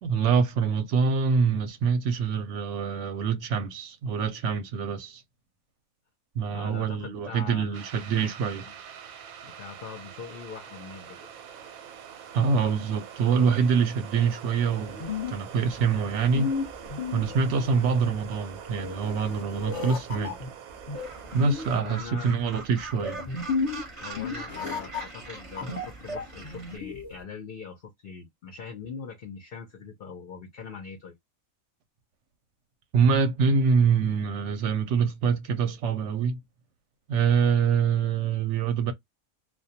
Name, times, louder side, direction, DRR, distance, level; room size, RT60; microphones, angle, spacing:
voice 1, 0.0-5.2 6.4-8.6 12.3-16.5 17.1-20.3 21.3-23.2 32.9-36.4 37.1-38.9, right 5 dB, 65° right, 0.8 m, -25 dB
voice 2, 6.5-7.8 8.6-8.7 9.4-11.3 21.3-21.4 21.7-22.3 24.0-31.2, left 6 dB, 65° left, 0.5 m, -42 dB
sound 1, 7.7-21.8, right 9 dB, 90° right, 1.1 m, -44 dB
sound 2, 14.7-27.2, left 4 dB, 30° left, 0.8 m, -34 dB
Gull seagull, 20.9-26.8, right 3 dB, 30° right, 0.6 m, -43 dB
2.2 x 2.2 x 2.6 m
omnidirectional pair, 1.5 m